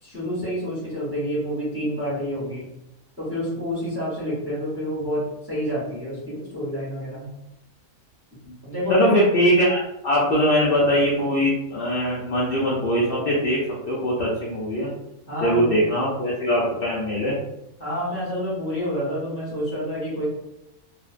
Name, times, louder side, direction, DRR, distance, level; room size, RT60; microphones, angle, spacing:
voice 1, 0.0-2.7 3.2-7.3 8.6-9.1 15.3-15.8 17.8-20.3, equal, 15° right, -8 dB, 0.5 m, -28 dB
voice 2, 8.9-13.6 13.9-14.9 15.4-17.3, equal, 80° left, -5 dB, 0.5 m, -21 dB
2.5 x 2.1 x 2.4 m, 0.89 s
omnidirectional pair, 1.6 m